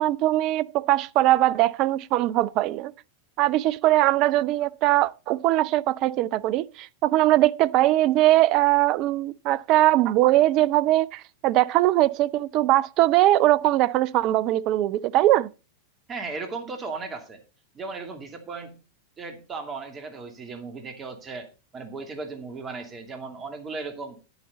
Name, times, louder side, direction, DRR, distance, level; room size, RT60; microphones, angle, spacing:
voice 1, 0.0-2.9 3.4-15.5, right 15 dB, 40° right, 0.5 m, -21 dB
voice 2, 16.1-17.4 17.7-18.8 19.2-21.5 21.7-24.2, right 4 dB, 25° right, 2.4 m, -36 dB
10.5 x 8.1 x 4.1 m
figure-of-eight pair, 90°, 0 cm